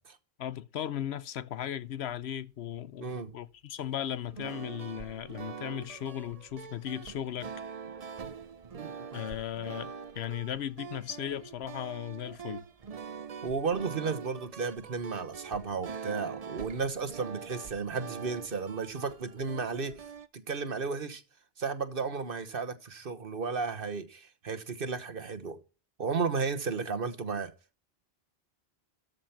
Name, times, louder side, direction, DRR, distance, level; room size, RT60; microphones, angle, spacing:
voice 1, 0.4-7.5 9.1-12.6, left 10 dB, 90° left, 1.0 m, -37 dB
voice 2, 3.0-3.3 8.7-8.9 13.4-19.9 20.5-21.2 21.6-25.6 26.0-27.5, right 5 dB, 60° right, 1.4 m, -33 dB
sound 1, 4.3-20.3, right 6 dB, 40° right, 0.7 m, -44 dB
13.5 x 5.2 x 5.7 m
omnidirectional pair, 1.0 m